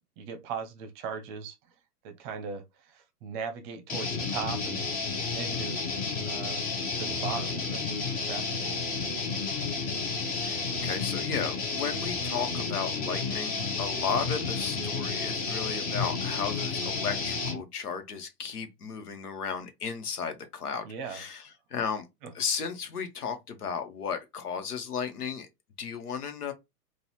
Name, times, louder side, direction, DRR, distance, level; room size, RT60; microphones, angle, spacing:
voice 1, 0.2-1.5 2.0-2.6 2.9-4.8 5.3-5.9 6.3-6.6 7.0-8.0 8.3-8.8 20.8-21.2 22.2-22.3, right 6 dB, 30° right, 0.8 m, -38 dB
sound 1, 3.9-17.6, left 4 dB, 20° left, 0.9 m, -31 dB
voice 2, 10.4-22.1 22.3-25.5 25.8-26.5, left 6 dB, 70° left, 1.2 m, -34 dB
3.9 x 2.5 x 3.0 m
figure-of-eight pair, 115°, 47 cm